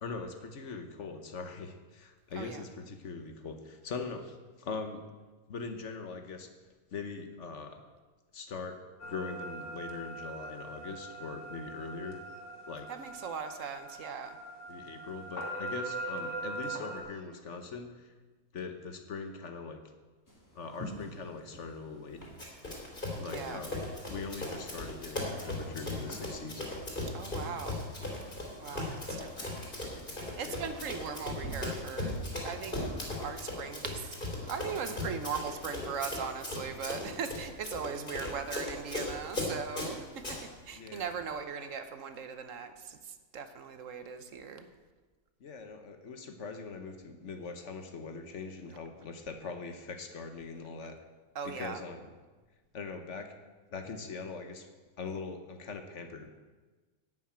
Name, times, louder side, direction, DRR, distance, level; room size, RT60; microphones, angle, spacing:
voice 1, 0.0-5.0 5.5-6.5 6.9-7.8 8.3-8.8 9.0-12.2 12.7-12.9 14.7-18.1 18.5-19.8 20.5-22.2 23.2-23.8 24.1-26.6 28.8-29.1 30.4-30.7 40.8-41.1 45.4-51.0 51.4-52.0 52.7-53.3 53.7-54.7 55.0-56.3, left 4 dB, 55° left, 6 dB, 1.3 m, -41 dB
sound 1, 9.0-17.0, right 2 dB, 75° left, 2.3 m, -41 dB
voice 2, 12.9-14.4 23.2-23.6 27.1-27.9 28.6-29.6 30.4-40.4 40.7-44.7 51.3-51.8, right 6 dB, 65° right, 9 dB, 1.2 m, -39 dB
sound 2, 20.3-33.0, right 1 dB, 10° left, 2.3 m, -48 dB
Run, 22.4-40.4, left 2 dB, 35° left, 3.0 m, -38 dB
11.5 x 6.2 x 8.8 m, 1.3 s
omnidirectional pair, 1.5 m